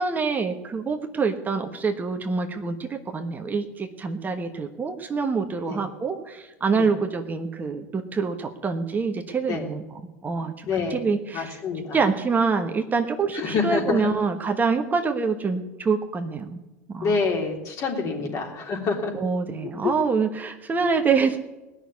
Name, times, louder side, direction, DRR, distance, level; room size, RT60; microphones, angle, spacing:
voice 1, 0.0-9.8 10.2-11.6 11.9-16.6 16.9-17.1 18.0-18.2 19.1-21.4, right 4 dB, 25° right, 4 dB, 1.3 m, -26 dB
voice 2, 10.7-11.1 11.3-12.0 13.3-14.1 17.0-19.1 19.8-19.9, left 4 dB, 45° left, 1 dB, 3.4 m, -27 dB
18.5 x 6.5 x 9.6 m, 1.0 s
hypercardioid pair, 95°, 8 cm